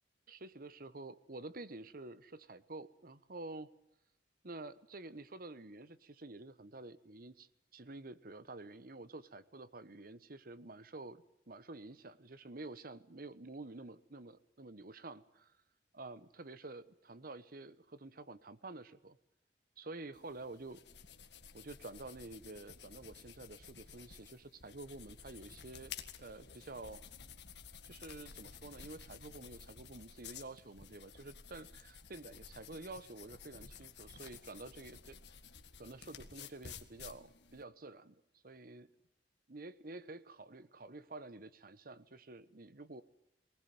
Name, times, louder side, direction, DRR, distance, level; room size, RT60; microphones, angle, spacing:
voice 1, 0.3-3.7 4.4-15.5 15.9-19.2 19.8-20.8 21.5-25.9 26.2-27.0 27.8-35.2 35.8-38.2 38.4-38.9 39.5-43.0, right 2 dB, 55° right, 15 dB, 1.2 m, -49 dB
sound 1, 20.1-37.6, left 6 dB, 80° left, 1.9 m, -53 dB
20.5 x 19.5 x 9.5 m, 0.83 s
head